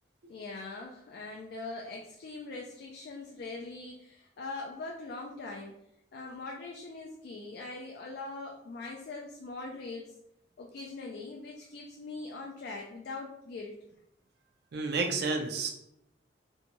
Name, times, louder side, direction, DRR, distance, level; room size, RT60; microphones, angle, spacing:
voice 1, 0.3-5.8 6.1-10.1 10.6-13.8, left 3 dB, 55° left, 0 dB, 0.3 m, -42 dB
voice 2, 14.7-15.7, right 3 dB, 60° right, 4 dB, 0.4 m, -30 dB
2.6 x 2.2 x 2.9 m, 0.79 s
head